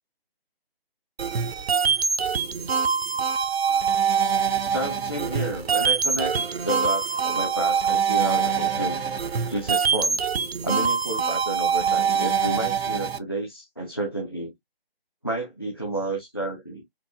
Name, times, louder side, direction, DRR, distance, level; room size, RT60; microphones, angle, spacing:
sound 1, 1.2-13.2, right 6 dB, 80° right, 0.6 m, -24 dB
voice 1, 4.7-6.4 6.6-9.0 9.5-10.2 10.6-14.5 15.2-16.8, right 1 dB, 25° left, 0.4 m, -30 dB
4.4 x 2.1 x 2.3 m
figure-of-eight pair, 160°, 30 cm